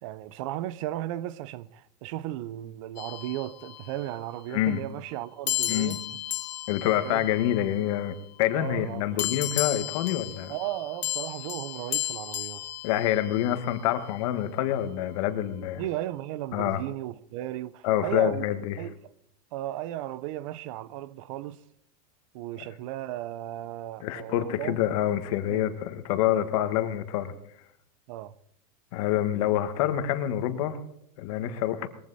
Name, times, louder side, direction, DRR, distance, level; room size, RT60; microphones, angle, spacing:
voice 1, 0.0-6.0 7.0-7.3 8.6-9.3 10.5-12.7 15.8-18.5 18.8-19.1 19.5-21.6 22.3-24.8 25.5-25.8 28.1-28.3 31.4-31.6, right 14 dB, 50° right, 0.7 m, -35 dB
sound 1, 3.0-4.2 5.5-8.2 9.2-13.7, left 14 dB, 85° left, 1.1 m, -34 dB
voice 2, 5.7-6.0 6.7-10.5 12.8-15.8 16.5-16.8 17.8-18.8 22.6-22.7 24.0-27.3 28.9-30.8 31.2-31.9, left 12 dB, 55° left, 1.6 m, -27 dB
21.5 x 15.0 x 4.2 m
supercardioid pair, 165°, 21 cm